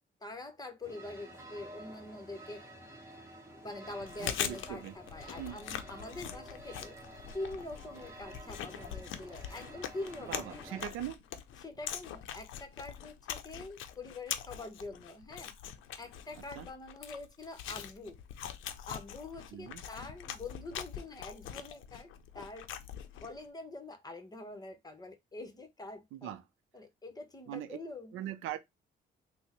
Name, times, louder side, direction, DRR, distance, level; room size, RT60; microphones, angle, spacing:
voice 1, 0.0-2.6 3.6-7.0 7.3-10.8 11.6-15.5 16.0-18.2 18.9-22.7 23.2-26.3 26.7-28.1, left 2 dB, 20° left, 0.9 m, -45 dB
sound 1, 0.8-10.9, right 1 dB, 15° right, 1.2 m, -50 dB
Chewing mastication, 3.9-23.4, left 9 dB, 80° left, 0.5 m, -43 dB
voice 2, 4.2-4.9 5.4-5.6 10.2-11.2 16.6-16.7 19.5-19.8 26.1-26.4 27.5-27.8 28.1-28.6, right 12 dB, 90° right, 0.5 m, -41 dB
3.5 x 2.1 x 2.9 m
cardioid pair, 90°, 20 cm